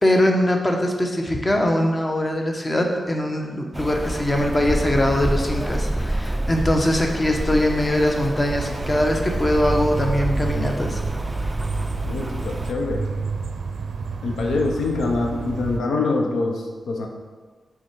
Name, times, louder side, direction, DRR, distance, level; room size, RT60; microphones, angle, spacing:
voice 1, 0.0-11.0, left 1 dB, 25° left, 2 dB, 0.9 m, -22 dB
Rain, 3.7-12.7, right 1 dB, 10° right, 0.3 m, -28 dB
sound 1, 8.5-15.8, right 4 dB, 80° right, 0.4 m, -29 dB
voice 2, 12.1-13.1 14.2-17.1, left 3 dB, 90° left, 1 dB, 0.7 m, -24 dB
6.3 x 3.7 x 4.5 m, 1.4 s
cardioid pair, 60°, 0 cm